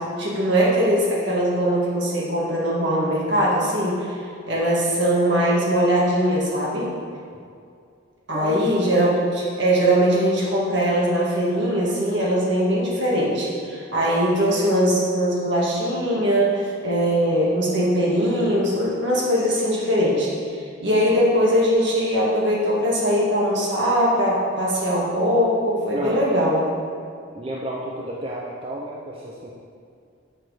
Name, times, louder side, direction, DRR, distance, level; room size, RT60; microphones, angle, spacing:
voice 1, 0.1-4.1 4.5-6.9 8.3-20.3 20.8-26.6, equal, 60° right, -5 dB, 2.1 m, -21 dB
voice 2, 25.9-26.3 27.3-29.5, right 1 dB, 25° right, -3 dB, 0.6 m, -31 dB
6.5 x 6.1 x 6.6 m, 2.3 s
head